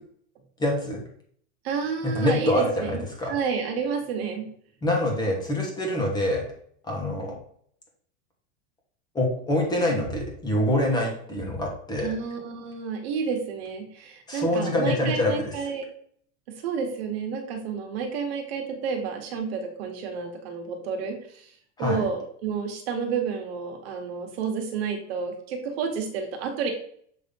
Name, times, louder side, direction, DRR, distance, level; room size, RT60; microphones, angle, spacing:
voice 1, 0.6-1.0 2.1-3.3 4.8-6.4 6.8-7.3 9.1-12.1 14.3-15.5 21.8-22.0, left 1 dB, 10° left, 0 dB, 1.2 m, -25 dB
voice 2, 1.6-4.5 12.0-15.9 16.5-21.5 21.8-26.7, right 5 dB, 60° right, 3 dB, 1.5 m, -30 dB
7.0 x 3.0 x 5.3 m, 0.62 s
supercardioid pair, 175°, 34 cm